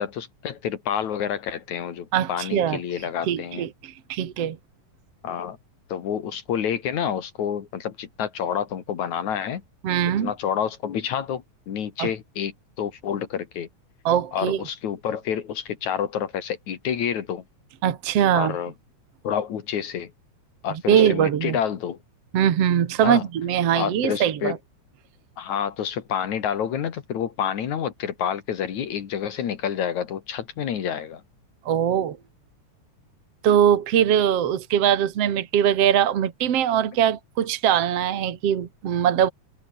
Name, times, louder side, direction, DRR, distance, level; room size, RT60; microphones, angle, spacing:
voice 1, 0.0-3.7 5.2-5.6 5.9-9.6 10.2-13.7 14.3-17.4 18.3-18.7 19.2-20.1 20.6-22.0 23.0-23.2 23.8-24.5 25.4-31.2, left 8 dB, 80° left, 3.3 m, -28 dB
voice 2, 2.1-2.8 3.3-4.6 9.8-10.3 12.0-12.1 14.0-14.6 17.8-18.5 20.9-21.6 22.3-24.6 31.7-32.2 33.4-39.3, right 9 dB, 60° right, 2.6 m, -21 dB
omnidirectional pair, 3.3 m